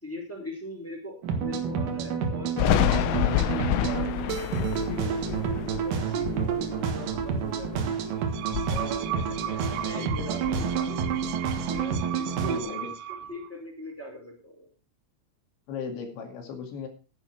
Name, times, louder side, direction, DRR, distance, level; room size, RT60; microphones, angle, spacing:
voice 1, 0.0-4.3 4.7-8.2 8.7-11.2 11.7-12.8 13.3-14.7, equal, 5° left, -1 dB, 3.9 m, -40 dB
sound 1, 1.2-12.6, right 6 dB, 65° right, 2.3 m, -29 dB
Thunder, 2.6-8.0 8.4-9.8 10.1-11.8, left 13 dB, 80° left, 3.4 m, -29 dB
sound 2, 8.1-13.5, right 11 dB, 80° right, 2.8 m, -37 dB
voice 2, 9.6-10.1 12.4-12.9 15.7-16.9, left 6 dB, 65° left, 5 dB, 4.3 m, -37 dB
11.5 x 10.0 x 4.7 m, 0.34 s
omnidirectional pair, 5.9 m